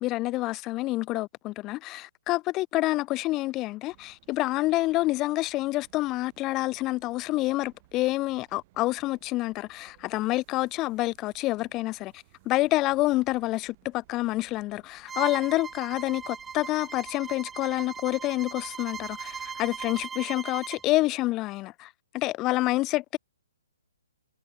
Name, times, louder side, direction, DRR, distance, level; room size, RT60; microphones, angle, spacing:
voice 1, 0.0-12.1 12.5-23.2, left 18 dB, 20° left, 0.4 m, -28 dB
sound 1, 3.9-20.1, right 20 dB, 35° right, 3.3 m, -61 dB
Bowed string instrument, 15.1-20.9, right 6 dB, 10° right, 1.0 m, -39 dB
hypercardioid pair, 150°, 0 cm